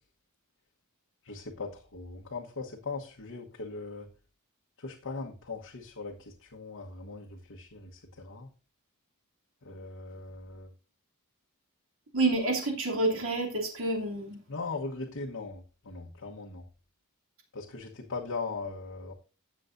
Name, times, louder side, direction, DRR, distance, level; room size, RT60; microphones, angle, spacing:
voice 1, 1.2-4.1 4.8-8.5 9.6-10.7 14.5-16.6 17.5-19.1, left 3 dB, 65° left, -1 dB, 1.2 m, -39 dB
voice 2, 12.1-14.4, right 2 dB, 65° right, 0 dB, 2.9 m, -28 dB
16.0 x 7.2 x 2.6 m, 0.34 s
head